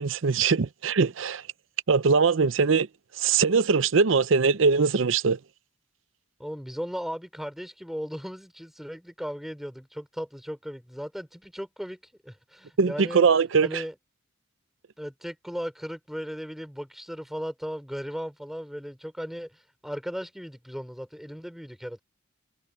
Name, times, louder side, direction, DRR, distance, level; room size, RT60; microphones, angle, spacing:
voice 1, 0.0-1.4 1.9-2.9 3.2-5.4 12.8-13.8, right 5 dB, 65° right, 0.6 m, -22 dB
voice 2, 6.4-12.0 12.2-13.2 13.6-13.9 15.0-22.0, equal, ahead, 4.1 m, -36 dB
head